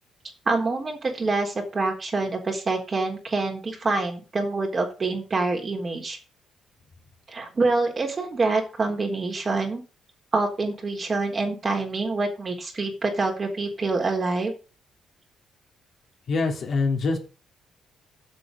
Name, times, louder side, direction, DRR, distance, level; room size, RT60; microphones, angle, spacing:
voice 1, 0.5-6.2 7.3-9.8 10.3-14.5, right 3 dB, 35° right, 2 dB, 3.9 m, -26 dB
voice 2, 16.3-17.2, left 3 dB, 55° left, 2 dB, 3.1 m, -24 dB
8.0 x 6.4 x 8.0 m, 0.34 s
cardioid pair, 90°, 0 cm